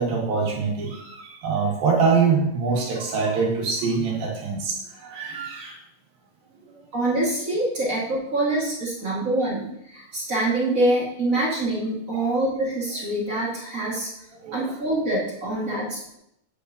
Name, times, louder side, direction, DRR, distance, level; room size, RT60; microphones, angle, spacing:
voice 1, 0.0-5.7 12.1-12.3 14.4-14.7 15.5-15.7, right 5 dB, 85° right, -2 dB, 3.5 m, -24 dB
voice 2, 6.9-14.1 14.5-16.2, right 1 dB, 50° right, -5 dB, 0.9 m, -25 dB
8.3 x 8.2 x 2.6 m, 0.76 s
omnidirectional pair, 4.0 m